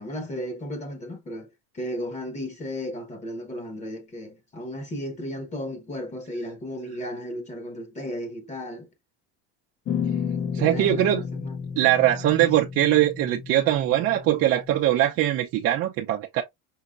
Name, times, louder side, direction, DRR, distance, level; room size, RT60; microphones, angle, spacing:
voice 1, 0.0-8.9 10.6-11.5 12.4-12.5, equal, 25° left, 1.2 m, -35 dB
sound 1, 9.9-14.9, left 7 dB, 40° left, 0.9 m, -32 dB
voice 2, 10.5-11.2 11.8-16.4, right 13 dB, 45° right, 0.6 m, -21 dB
5.4 x 2.8 x 2.5 m
cardioid pair, 145°, 30 cm